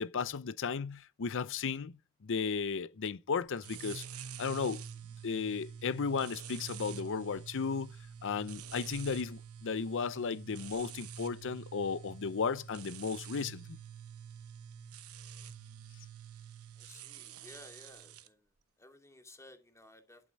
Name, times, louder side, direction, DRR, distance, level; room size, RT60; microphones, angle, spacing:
voice 1, 0.0-4.0 4.4-4.8 5.2-8.0 8.2-13.8, left 5 dB, 60° left, 0.6 m, -35 dB
sound 1, 3.6-18.3, right 7 dB, 80° right, 1.0 m, -47 dB
voice 2, 16.8-18.4 18.8-20.3, left 1 dB, 15° left, 2.4 m, -56 dB
11.5 x 7.7 x 5.3 m
head